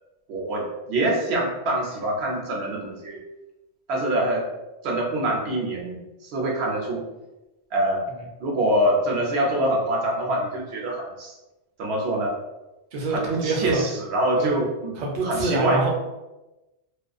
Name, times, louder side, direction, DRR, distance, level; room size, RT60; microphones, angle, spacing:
voice 1, 0.3-3.2 3.9-4.4 4.8-7.0 7.7-8.0 8.4-11.3 11.8-12.4 13.1-15.0 15.2-15.8, right 1 dB, 75° right, -2 dB, 0.9 m, -25 dB
voice 2, 12.9-13.8 14.4-14.5 15.0-15.9, right 2 dB, 50° right, -1 dB, 0.6 m, -26 dB
2.3 x 2.3 x 2.4 m, 1.0 s
omnidirectional pair, 1.1 m